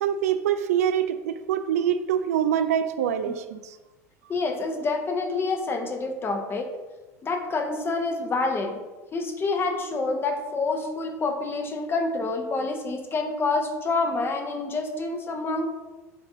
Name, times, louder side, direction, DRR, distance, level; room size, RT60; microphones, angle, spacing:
voice 1, 0.0-3.8, right 9 dB, 65° right, 10 dB, 0.4 m, -25 dB
voice 2, 4.3-6.7 7.2-8.8 9.1-15.7, left 3 dB, 25° left, 4 dB, 1.1 m, -27 dB
8.3 x 3.7 x 3.8 m, 1.2 s
figure-of-eight pair, 75°, 9 cm